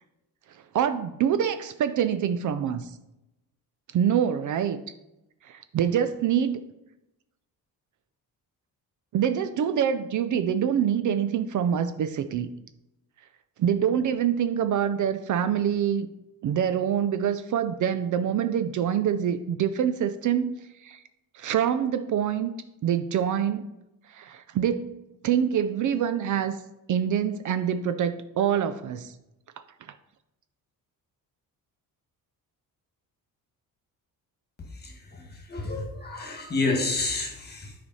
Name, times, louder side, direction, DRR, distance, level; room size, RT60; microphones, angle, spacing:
voice 1, 0.7-2.9 3.9-4.8 5.4-6.7 9.1-12.5 13.6-16.1 16.4-21.0 21.3-22.5 22.8-23.7 24.1-26.6 26.9-29.1, right 9 dB, 55° right, 11 dB, 0.5 m, -25 dB
voice 2, 34.7-37.7, left 3 dB, 25° left, 2 dB, 1.7 m, -30 dB
10.0 x 5.0 x 4.1 m, 0.92 s
cardioid pair, 160°, 37 cm